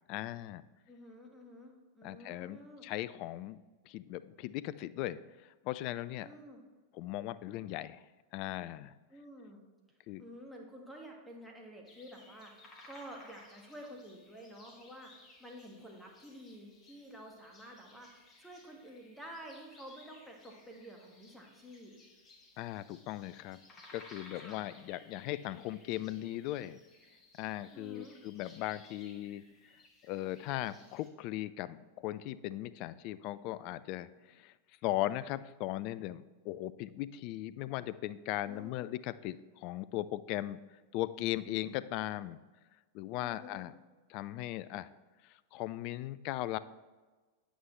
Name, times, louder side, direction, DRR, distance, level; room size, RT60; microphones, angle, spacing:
voice 1, 0.1-0.6 2.0-3.6 3.9-6.3 6.9-8.0 8.3-8.9 10.1-10.2 22.6-23.6 23.9-26.8 27.4-29.4 30.1-34.5 34.8-40.6 40.9-42.4 42.9-43.7 44.1-44.9 45.5-46.6, left 15 dB, 45° left, 16 dB, 0.3 m, -38 dB
voice 2, 0.9-2.8 6.2-6.6 9.1-9.6 10.2-12.6 12.9-21.9 24.3-24.7 27.7-28.2 38.4-38.9 43.2-43.6, equal, ahead, 1 dB, 1.6 m, -50 dB
sound 1, 11.8-31.1, left 2 dB, 20° left, 1.7 m, -59 dB
9.2 x 8.0 x 3.1 m, 1.3 s
figure-of-eight pair, 90°, 0 cm